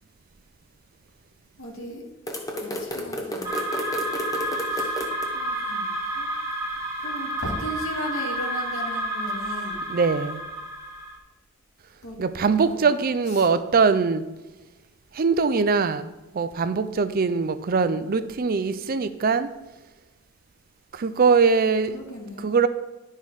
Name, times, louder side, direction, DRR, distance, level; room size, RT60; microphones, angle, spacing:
voice 1, 1.6-2.0 2.6-3.6 4.6-5.0 5.3-6.3 7.0-9.9 12.0-12.2 12.6-12.9 13.3-13.5 21.9-22.5, equal, 80° left, 2.2 m, -36 dB
sound 1, 2.3-5.3, left 1 dB, 15° left, 1.1 m, -32 dB
sound 2, 3.4-11.2, right 1 dB, 15° right, 1.6 m, -30 dB
voice 2, 9.9-10.4 12.2-14.2 15.1-19.5 20.9-22.0 22.4-22.7, right 5 dB, 45° right, 0.5 m, -22 dB
11.0 x 5.6 x 4.8 m
head